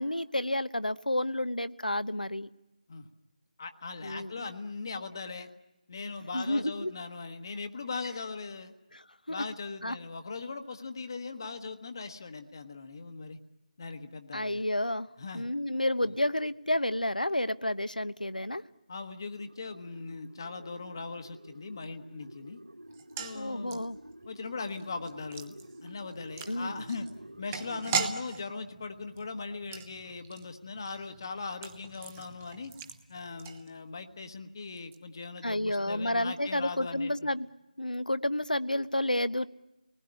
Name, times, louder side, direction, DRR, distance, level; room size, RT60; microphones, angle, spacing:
voice 1, 0.0-2.5 4.0-4.5 6.3-6.9 8.9-9.4 9.8-10.0 14.3-15.1 15.3-18.6 23.3-24.0 26.5-26.8 35.4-37.5 37.8-39.5, left 1 dB, 80° left, 14 dB, 1.0 m, -30 dB
voice 2, 3.6-5.5 5.9-8.7 9.3-13.4 13.8-14.6 15.2-15.5 16.0-16.1 18.9-22.6 23.2-23.8 24.2-25.5 25.8-27.1 27.4-32.7 33.1-37.1, left 4 dB, 30° left, 7 dB, 1.3 m, -39 dB
sound 1, 19.4-28.0, right 1 dB, 85° right, 2.0 m, -50 dB
sound 2, 22.9-34.1 34.4-34.5 34.8-35.0, right 6 dB, 15° right, 0.9 m, -40 dB
30.0 x 20.0 x 9.9 m, 0.99 s
figure-of-eight pair, 160°, 4 cm